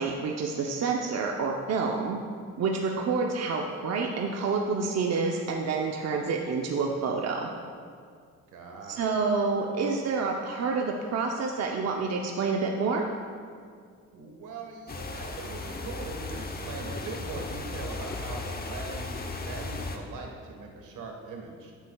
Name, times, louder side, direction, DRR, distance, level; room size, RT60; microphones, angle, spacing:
voice 1, 0.0-2.2 2.6-7.5 8.9-13.0, right 4 dB, 60° right, 1 dB, 0.8 m, -28 dB
voice 2, 8.5-9.1 14.1-21.7, right 3 dB, 80° right, 1 dB, 1.5 m, -41 dB
sound 1, 14.9-20.0, left 3 dB, 30° left, 0.9 m, -36 dB
14.5 x 8.1 x 2.3 m, 2.1 s
cardioid pair, 90°, 30 cm